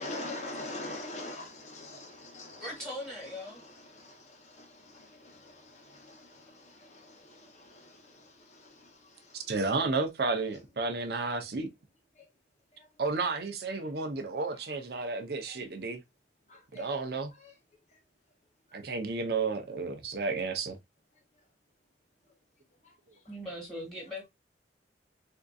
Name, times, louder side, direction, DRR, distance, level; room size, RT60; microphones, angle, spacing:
voice 1, 0.0-9.6 11.4-11.5 12.1-12.3 12.7-12.9 14.5-15.0 15.4-15.7 16.5-17.0 17.3-17.5 17.9-18.0 18.7-18.8 22.8-23.0, left 2 dB, 40° left, 0.8 m, -45 dB
voice 2, 2.6-3.6 23.3-24.3, left 1 dB, ahead, 1.4 m, -40 dB
voice 3, 9.5-11.7 13.0-16.0 16.7-17.3 18.7-20.8, right 3 dB, 55° right, 0.5 m, -32 dB
3.6 x 2.5 x 2.2 m
head